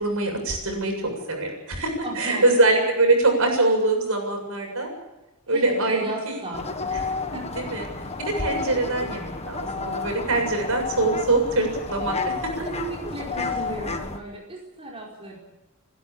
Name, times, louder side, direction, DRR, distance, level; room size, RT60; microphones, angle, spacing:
voice 1, 0.0-4.9 5.5-6.4 6.9-7.0 7.6-7.8 8.2-12.3, right 2 dB, 70° right, 2 dB, 7.4 m, -23 dB
voice 2, 2.0-2.7 5.5-6.9 7.3-7.5 12.2-12.3 12.6-15.4, right 1 dB, 25° right, -3 dB, 4.8 m, -34 dB
sound 1, 6.5-14.2, left 4 dB, 30° left, 1.6 m, -31 dB
30.0 x 12.5 x 8.7 m, 1.0 s
head